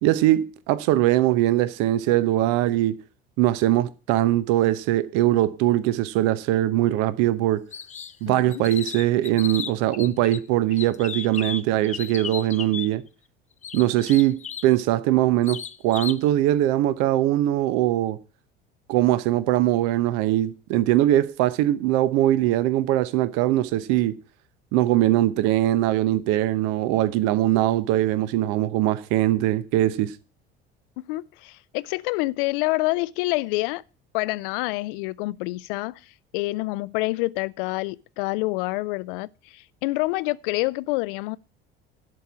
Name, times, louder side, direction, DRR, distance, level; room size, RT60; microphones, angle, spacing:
voice 1, 0.0-3.0 3.4-7.6 8.2-13.0 13.7-18.2 18.9-24.2 24.7-30.1, right 14 dB, 60° right, 0.9 m, -21 dB
sound 1, 7.7-8.2 8.5-10.4 10.7-12.9 13.6-14.7 15.4-16.2, left 7 dB, 25° left, 0.6 m, -35 dB
voice 2, 8.2-8.6 31.1-33.8 34.1-36.0 36.3-41.4, left 22 dB, 65° left, 0.5 m, -27 dB
11.5 x 4.7 x 8.4 m
figure-of-eight pair, 60°, 29 cm